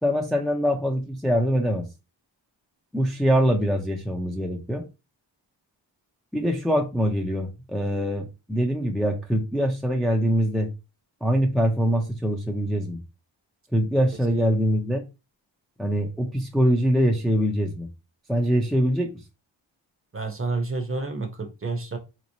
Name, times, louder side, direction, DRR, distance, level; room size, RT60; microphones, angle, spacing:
voice 1, 0.0-1.9 2.9-4.8 6.3-10.7 11.2-13.0 13.7-15.0 15.8-17.9 18.3-19.1, equal, ahead, 0.5 m, -23 dB
voice 2, 20.1-22.0, right 3 dB, 30° right, 0.8 m, -29 dB
4.0 x 3.0 x 2.7 m
wide cardioid pair, 90°, 46 cm